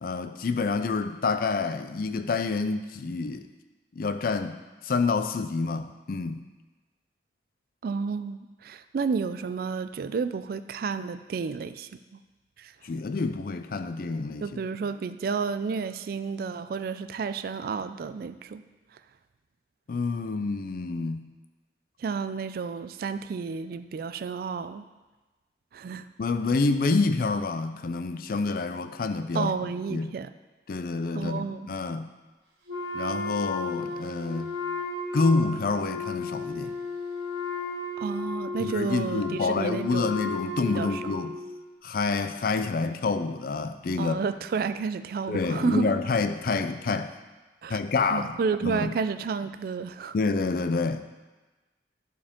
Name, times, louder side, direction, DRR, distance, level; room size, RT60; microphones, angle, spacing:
voice 1, 0.0-3.5 4.0-6.4 12.8-14.5 19.9-21.3 25.9-29.5 29.9-30.2 30.7-32.1 32.9-34.5 35.1-36.7 38.6-41.3 41.8-44.2 45.3-47.2 47.7-48.9 50.1-51.0, left 4 dB, 55° left, 9 dB, 0.4 m, -28 dB
voice 2, 7.8-11.9 12.6-12.7 14.4-18.6 22.0-24.8 25.7-26.1 29.3-30.3 31.1-31.7 38.0-40.2 40.7-41.0 44.0-45.9 47.6-47.8 48.1-50.2, right 5 dB, 55° right, 12 dB, 0.3 m, -31 dB
Wind instrument woodwind instrument, 32.7-41.5, left 3 dB, 75° right, 1.7 m, -34 dB
11.0 x 4.6 x 3.7 m, 1.2 s
head